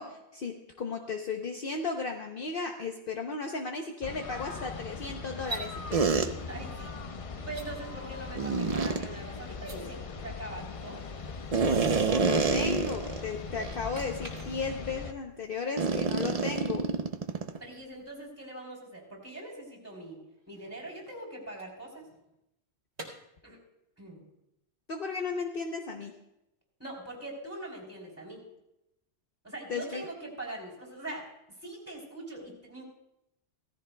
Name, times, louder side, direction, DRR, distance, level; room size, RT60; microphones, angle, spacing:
voice 1, 0.0-6.1 11.6-16.9 24.9-26.1 29.7-30.0, left 4 dB, 55° left, 3 dB, 0.9 m, -35 dB
sound 1, 4.0-15.1, left 4 dB, 40° left, 0.5 m, -40 dB
sound 2, 5.4-5.7 7.4-7.7 9.5-9.8 13.9-15.0 18.1-18.2 20.2-22.3 22.9-23.1, right 2 dB, 65° right, 2.2 m, -44 dB
sound 3, 5.9-6.3 8.3-9.0 11.5-13.2 13.6-13.7 14.3-14.5 15.8-17.6, right 4 dB, 40° right, 0.6 m, -27 dB
voice 2, 6.5-6.9 7.3-11.1 17.6-20.2 20.5-22.1 23.4-23.6 24.0-24.2 26.8-28.4 29.4-31.3 31.6-32.8, right 2 dB, 10° right, -3 dB, 3.5 m, -42 dB
16.5 x 14.5 x 2.2 m, 0.85 s
omnidirectional pair, 1.2 m